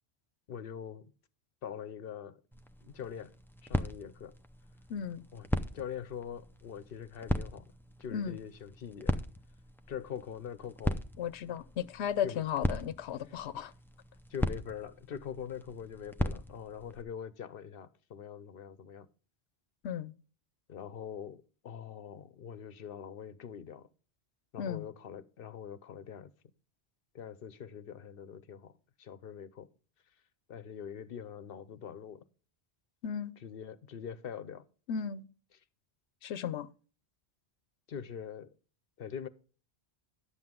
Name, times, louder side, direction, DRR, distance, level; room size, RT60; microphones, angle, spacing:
voice 1, 0.5-1.0 1.6-2.4 2.8-3.3 3.6-4.3 5.3-5.5 5.7-7.6 8.0-9.2 9.9-11.0 12.2-12.4 14.3-19.1 20.7-23.9 24.5-26.3 27.1-28.7 29.0-29.7 30.5-32.2 33.4-34.6 37.9-38.5 39.0-39.3, left 8 dB, 65° left, 0.9 m, -43 dB
sound 1, 2.5-17.0, equal, 5° left, 0.3 m, -38 dB
voice 2, 4.9-5.2 8.1-8.4 11.2-13.7 19.8-20.1 24.6-24.8 33.0-33.4 34.9-35.3 36.2-36.7, left 8 dB, 90° left, 0.9 m, -35 dB
11.5 x 7.8 x 3.6 m
omnidirectional pair, 1.1 m